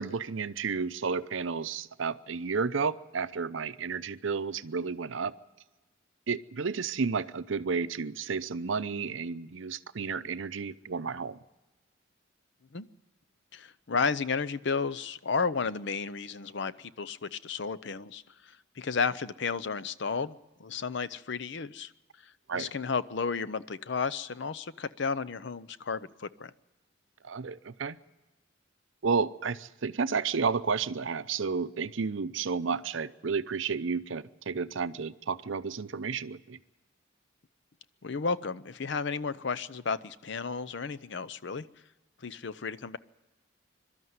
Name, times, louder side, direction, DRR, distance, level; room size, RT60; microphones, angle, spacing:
voice 1, 0.0-5.3 6.3-11.4 22.5-22.7 27.2-28.0 29.0-36.6, right 5 dB, 70° right, 13 dB, 0.6 m, -32 dB
voice 2, 13.5-18.2 18.8-20.3 20.6-21.9 22.5-26.5 38.0-41.7 42.2-43.0, left 5 dB, 60° left, 15 dB, 0.6 m, -32 dB
23.0 x 12.5 x 9.5 m, 1.1 s
head